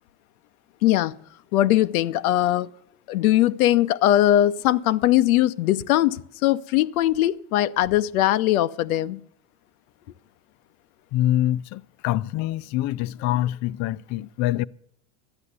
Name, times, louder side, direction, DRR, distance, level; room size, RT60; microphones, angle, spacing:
voice 1, 0.8-1.1 1.5-2.7 3.1-9.2, left 13 dB, 90° left, 0.8 m, -20 dB
voice 2, 11.1-14.6, left 14 dB, 45° left, 0.4 m, -25 dB
12.5 x 9.8 x 8.1 m
supercardioid pair, 120°, 42 cm